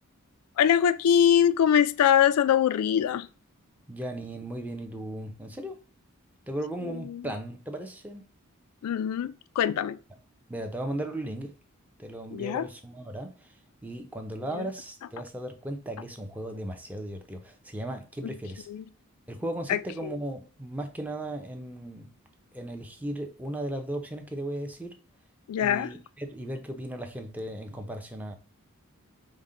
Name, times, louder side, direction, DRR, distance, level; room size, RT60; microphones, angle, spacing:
voice 1, 0.6-3.3 7.1-7.2 8.8-10.0 12.3-12.7 14.6-14.7 18.7-18.8 19.7-20.2 25.5-25.9, left 9 dB, 85° left, 0.3 m, -23 dB
voice 2, 3.9-5.8 6.5-8.3 10.5-11.5 12.0-13.5 13.8-18.7 19.3-22.1 22.5-25.0 25.6-28.3, right 1 dB, 5° right, 0.5 m, -36 dB
5.2 x 2.1 x 3.7 m
head